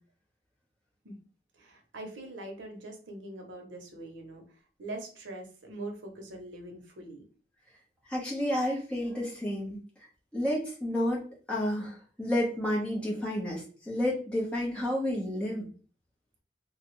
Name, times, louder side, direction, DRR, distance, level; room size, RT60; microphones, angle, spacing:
voice 1, 1.5-4.4 4.8-7.2, right 2 dB, 80° right, 3 dB, 0.8 m, -42 dB
voice 2, 8.1-9.8 10.3-11.2 11.5-15.7, left 1 dB, 5° left, -5 dB, 1.0 m, -30 dB
3.2 x 2.3 x 3.1 m, 0.40 s
head